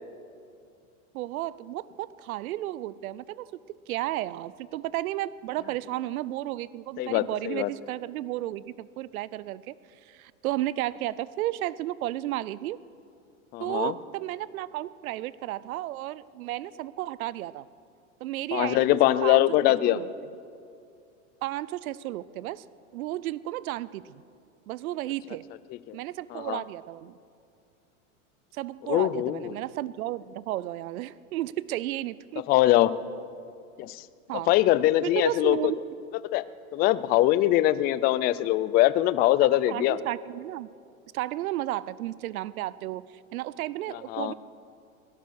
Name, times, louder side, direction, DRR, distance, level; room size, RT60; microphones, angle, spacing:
voice 1, 1.1-3.5 3.9-9.7 10.0-12.8 13.6-17.7 18.2-20.1 21.4-22.6 22.9-24.2 24.7-25.4 25.9-27.2 28.5-32.4 34.3-34.5 35.0-35.8 39.5-40.7 41.1-44.3, right 15 dB, 85° right, 19 dB, 0.6 m, -33 dB
voice 2, 7.0-7.7 13.5-13.9 18.5-20.0 25.9-26.0 26.3-26.6 28.9-29.5 32.5-33.0 33.8-34.0 34.5-35.6 36.3-36.4 36.7-40.0 44.1-44.3, left 15 dB, 25° left, 16 dB, 0.3 m, -22 dB
17.0 x 12.0 x 6.4 m, 2.4 s
supercardioid pair, 120°, 42 cm